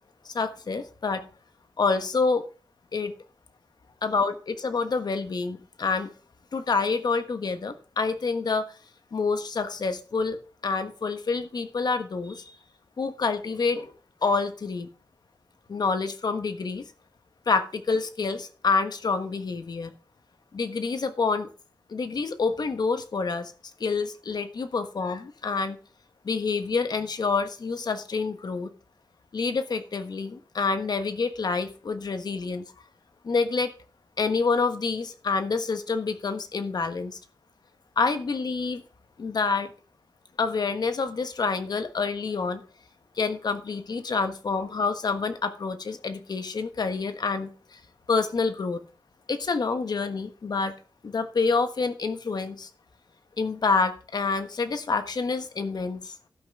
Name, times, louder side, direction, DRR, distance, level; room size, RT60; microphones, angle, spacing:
voice 1, 0.2-1.2 1.8-2.4 2.9-3.1 4.0-6.1 6.5-8.7 9.1-10.4 10.6-12.6 13.0-13.9 14.2-14.9 15.7-16.8 17.5-19.9 20.5-21.5 21.9-23.5 23.8-25.8 26.2-28.7 29.3-32.6 33.2-33.7 34.2-37.2 38.0-38.8 39.2-39.7 40.4-42.6 43.2-47.8 48.1-48.8 49.3-50.8 51.0-52.7 53.4-56.1, left 4 dB, 60° left, 9 dB, 1.4 m, -27 dB
12.5 x 5.8 x 5.4 m, 0.36 s
wide cardioid pair, 80°, 8 cm